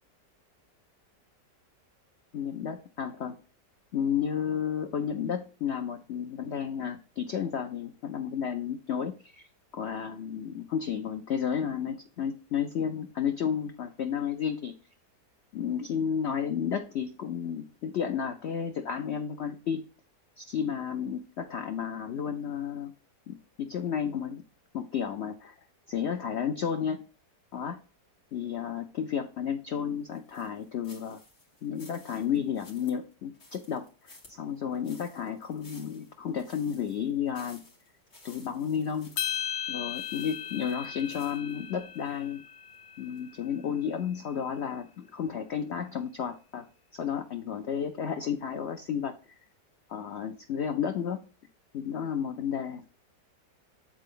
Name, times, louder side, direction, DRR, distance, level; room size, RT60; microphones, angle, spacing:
voice 1, 2.3-3.4 3.9-9.5 9.7-14.7 15.5-19.8 20.4-22.9 23.3-24.4 24.7-25.5 25.9-27.0 27.5-27.8 28.3-31.2 31.6-37.6 38.2-39.2 39.7-42.4 43.0-46.6 46.9-49.1 49.9-51.2 51.7-52.9, left 8 dB, 85° left, 6 dB, 0.5 m, -32 dB
sound 1, 30.1-42.2 42.6-42.7 43.2-43.3, left 2 dB, 40° left, 2.3 m, -55 dB
sound 2, 39.2-43.6, left 9 dB, 70° left, 1.5 m, -37 dB
8.8 x 4.1 x 3.8 m, 0.36 s
omnidirectional pair, 1.9 m